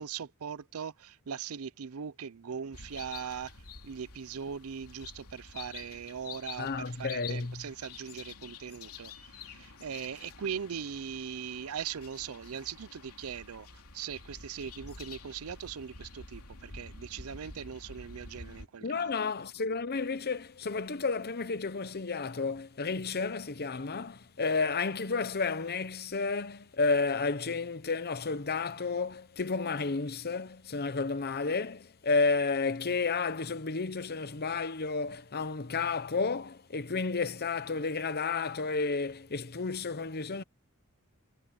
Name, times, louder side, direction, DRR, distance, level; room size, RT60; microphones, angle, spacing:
voice 1, 0.0-13.7 13.9-19.3, right 7 dB, 70° right, 0.5 m, -40 dB
sound 1, 2.7-18.7, left 5 dB, 75° left, 3.1 m, -49 dB
voice 2, 6.6-7.6 18.8-40.4, left 4 dB, 45° left, 0.9 m, -31 dB
head